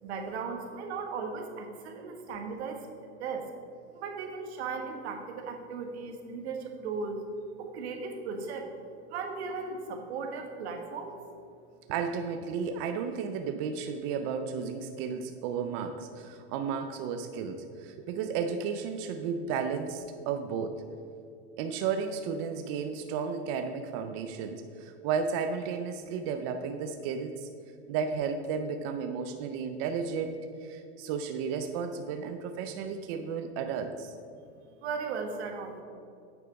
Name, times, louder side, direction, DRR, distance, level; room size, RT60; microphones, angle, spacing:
voice 1, 0.0-2.9 3.2-3.5 3.9-7.2 7.6-8.7 9.1-11.2 34.8-35.8, right 5 dB, 65° right, 4 dB, 1.5 m, -37 dB
voice 2, 11.9-20.8 21.6-27.5 27.9-34.1, right 6 dB, 30° right, 7 dB, 0.4 m, -33 dB
8.8 x 6.9 x 5.1 m, 2.4 s
supercardioid pair, 155°, 34 cm